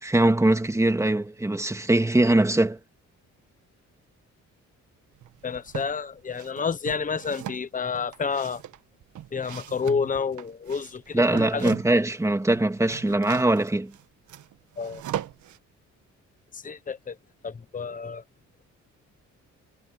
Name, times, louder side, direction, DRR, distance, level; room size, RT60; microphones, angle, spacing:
voice 1, 0.0-2.8 11.1-13.9, right 2 dB, 10° right, 2.3 m, -22 dB
sound 1, 5.2-5.9 6.3-12.1 12.4-15.6, right 11 dB, 75° right, 1.6 m, -39 dB
voice 2, 5.4-8.6 9.3-11.7 14.8-15.0 16.5-17.2 17.4-18.2, left 5 dB, 25° left, 1.1 m, -29 dB
cardioid pair, 90°, 30 cm